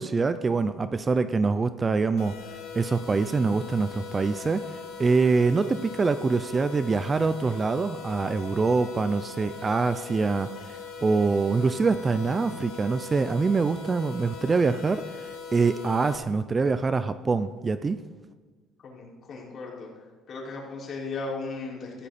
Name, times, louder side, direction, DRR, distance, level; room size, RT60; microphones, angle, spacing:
voice 1, 0.0-2.4 2.7-4.7 5.0-18.0, right 4 dB, 20° right, 12 dB, 0.5 m, -25 dB
sound 1, 2.2-16.2, left 5 dB, 90° left, 3.1 m, -41 dB
voice 2, 18.8-22.1, left 3 dB, 40° left, -4 dB, 5.1 m, -37 dB
15.5 x 15.5 x 4.3 m, 1.4 s
cardioid pair, 135°, 0 cm